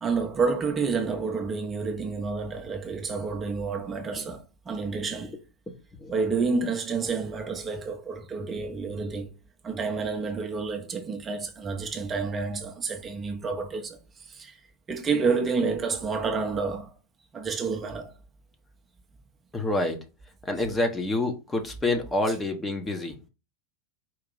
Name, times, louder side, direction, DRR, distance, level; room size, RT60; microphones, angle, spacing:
voice 1, 0.0-5.3 6.1-9.3 9.6-14.6 14.9-16.9 17.3-18.1, right 4 dB, 25° right, 0.7 m, -29 dB
voice 2, 5.7-6.1 19.5-20.0 20.4-23.3, left 2 dB, 15° left, 0.9 m, -28 dB
4.5 x 2.8 x 4.0 m
figure-of-eight pair, 85°, 0 cm